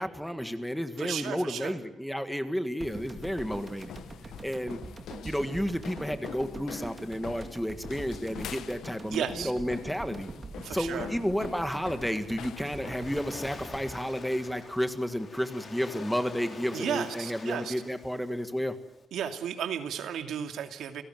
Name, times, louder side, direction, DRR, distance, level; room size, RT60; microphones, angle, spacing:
voice 1, 0.0-3.9 4.4-4.8 5.2-10.3 10.7-18.8, equal, ahead, 9 dB, 1.7 m, -31 dB
voice 2, 1.0-1.7 9.1-9.5 10.6-11.1 16.7-17.7 19.1-21.0, right 9 dB, 80° right, 7 dB, 2.5 m, -33 dB
sound 1, 2.8-13.2, left 10 dB, 80° left, 1.2 m, -45 dB
sound 2, 2.8-15.1 15.4-15.5, right 3 dB, 30° right, 2.3 m, -44 dB
Waves surf, 12.2-19.0, left 4 dB, 35° left, 4.0 m, -47 dB
29.5 x 18.0 x 9.3 m, 0.84 s
cardioid pair, 150°, 0 cm